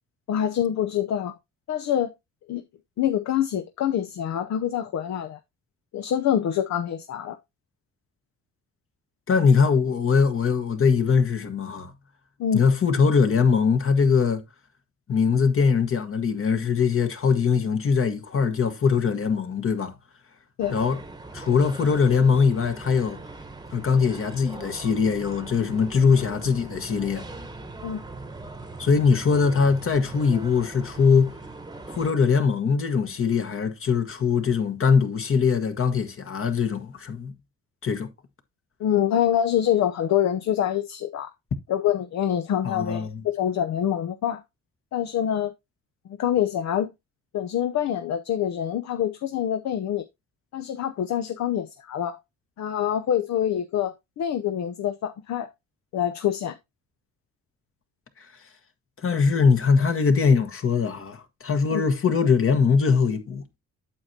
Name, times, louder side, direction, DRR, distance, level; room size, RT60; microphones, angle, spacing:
voice 1, 0.3-1.3 1.7-2.1 2.5-2.6 3.0-5.4 5.9-7.4 12.4-12.6 20.6-20.8 27.8-28.0 38.8-41.3 41.7-44.4 44.9-45.5 46.2-46.9 47.3-50.0 50.5-52.2 52.6-55.5 55.9-56.5 61.7-61.8, left 10 dB, 65° left, 0.8 m, -25 dB
voice 2, 9.3-11.9 12.5-14.4 15.1-20.0 20.7-21.0 21.3-23.2 23.7-27.2 28.8-31.3 31.9-37.3 37.8-38.1 42.6-43.2 58.2-58.3 59.0-63.4, left 5 dB, 45° left, 1.4 m, -22 dB
sound 1, 20.6-32.1, right 3 dB, 15° right, 1.1 m, -40 dB
8.6 x 7.4 x 2.8 m
cardioid pair, 90°, 30 cm